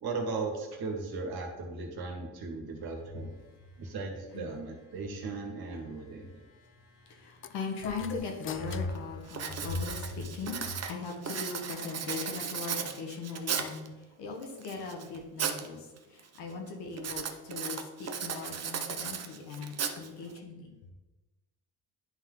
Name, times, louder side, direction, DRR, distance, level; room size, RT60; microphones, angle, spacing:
voice 1, 0.0-3.3 3.8-6.4, right 3 dB, 65° right, 1 dB, 1.9 m, -37 dB
voice 2, 6.2-20.7, left 4 dB, 90° left, 1 dB, 1.4 m, -39 dB
sound 1, 7.4-10.1, left 8 dB, 35° left, 0.4 m, -45 dB
Writing, 8.2-8.3 8.7-9.0 9.3-13.9 14.4-15.7 16.0-16.4 17.0-20.4, right 7 dB, 40° right, 0.8 m, -36 dB
10.5 x 3.8 x 3.9 m, 1.1 s
cardioid pair, 95°, 39 cm